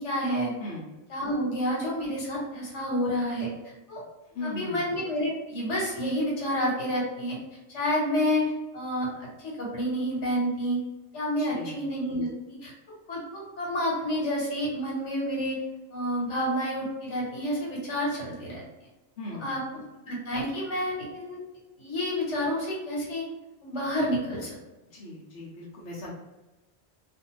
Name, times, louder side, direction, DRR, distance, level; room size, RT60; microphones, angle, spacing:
voice 1, 0.0-0.5 1.1-3.5 3.9-4.0 4.4-7.4 7.7-10.8 11.1-12.3 12.6-12.7 13.1-15.6 15.9-18.6 19.4-19.6 20.0-21.4 21.8-23.2 23.6-24.5, equal, 85° left, -4 dB, 1.3 m, -29 dB
voice 2, 0.6-1.0 4.3-4.9 11.4-11.8 19.2-19.8 24.9-26.1, left 2 dB, 70° left, -6 dB, 0.9 m, -39 dB
2.5 x 2.5 x 2.9 m, 1.1 s
omnidirectional pair, 1.2 m